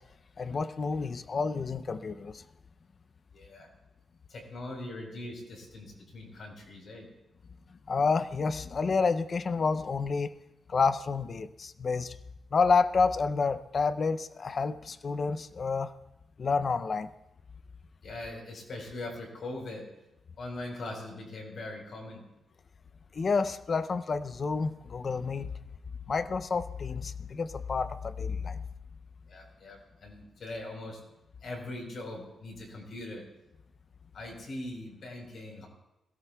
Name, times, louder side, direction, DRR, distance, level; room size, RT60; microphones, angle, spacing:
voice 1, 0.4-2.4 7.9-10.3 10.7-12.2 12.5-15.9 16.4-17.1 23.1-25.5 26.1-28.6, left 4 dB, 35° left, 13 dB, 0.5 m, -29 dB
voice 2, 3.3-3.7 4.3-7.1 18.0-19.9 20.4-22.2 29.3-31.0 31.4-33.2 34.1-35.7, left 2 dB, 55° left, 0 dB, 4.1 m, -41 dB
22.0 x 16.5 x 2.3 m, 0.93 s
wide cardioid pair, 150°, 0 cm